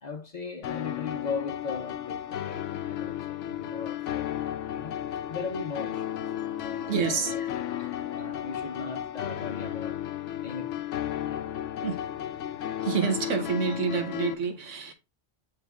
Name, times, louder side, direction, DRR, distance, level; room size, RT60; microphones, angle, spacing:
voice 1, 0.0-5.0 5.3-7.5 8.1-10.0 10.4-10.8 11.2-11.4 13.2-13.4, left 4 dB, 40° left, 0.7 m, -38 dB
sound 1, 0.6-14.3, left 11 dB, 75° left, 0.9 m, -34 dB
voice 2, 6.9-7.3 7.8-8.4 11.8-12.1 12.8-14.9, right 5 dB, 80° right, 1.4 m, -29 dB
7.8 x 3.4 x 3.5 m
omnidirectional pair, 1.3 m